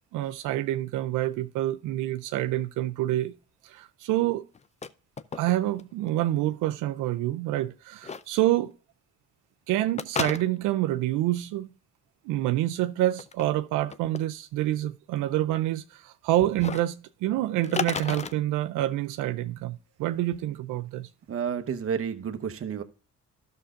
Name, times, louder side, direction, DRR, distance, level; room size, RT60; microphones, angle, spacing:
voice 1, 0.1-3.3 3.6-4.5 5.3-8.7 9.7-11.7 12.3-21.1, right 14 dB, 90° right, 0.5 m, -27 dB
sound 1, 4.5-4.9 5.2-5.8 6.1-6.2 8.0-8.2 10.0-10.8 13.1-13.4 13.9-14.2 16.6-16.8 17.6-18.3, left 5 dB, 25° left, 0.4 m, -32 dB
voice 2, 21.3-22.8, right 7 dB, 45° right, 1.0 m, -30 dB
12.5 x 6.4 x 2.4 m
cardioid pair, 90°, 30 cm